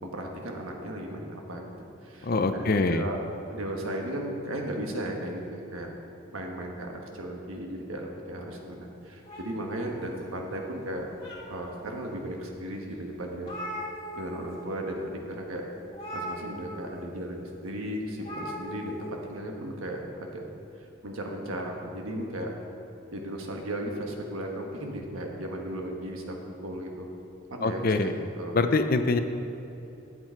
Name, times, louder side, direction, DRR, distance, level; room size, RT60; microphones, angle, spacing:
voice 1, 0.0-1.7 2.0-3.2 3.5-5.9 6.3-11.1 11.5-13.5 14.1-15.6 16.1-20.5 20.8-22.5 23.1-26.3 26.6-27.1 27.5-28.6, right 1 dB, 85° right, 1 dB, 1.3 m, -36 dB
voice 2, 2.2-3.1 27.6-28.1 28.5-29.2, left 3 dB, 45° left, 9 dB, 0.5 m, -24 dB
sound 1, 9.2-10.5 10.9-11.8 12.4-12.5 12.9-13.0 13.2-14.5 14.8-15.0 15.9-17.0 18.2-19.0, equal, 25° left, 1.8 m, -39 dB
11.5 x 7.6 x 4.5 m, 2.9 s
head